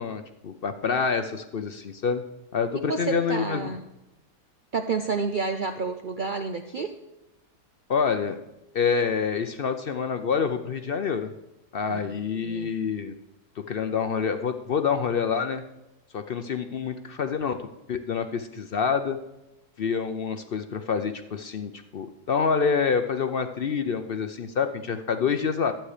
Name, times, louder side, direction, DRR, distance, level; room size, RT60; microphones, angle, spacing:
voice 1, 0.0-2.2 2.5-3.7 7.9-8.4 8.7-11.3 11.7-13.2 13.7-15.6 16.1-17.6 17.9-19.2 19.8-25.7, left 6 dB, 60° left, 8 dB, 0.5 m, -27 dB
voice 2, 2.8-3.8 4.7-6.9 11.9-12.7, right 4 dB, 85° right, 7 dB, 0.4 m, -30 dB
12.0 x 8.6 x 4.9 m, 0.94 s
omnidirectional pair, 1.7 m